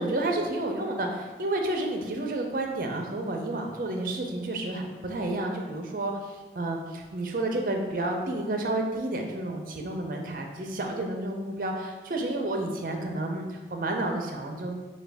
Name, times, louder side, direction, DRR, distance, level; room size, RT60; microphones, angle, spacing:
voice 1, 0.0-14.7, right 2 dB, 50° right, 2 dB, 0.5 m, -30 dB
5.8 x 2.2 x 3.4 m, 1.3 s
head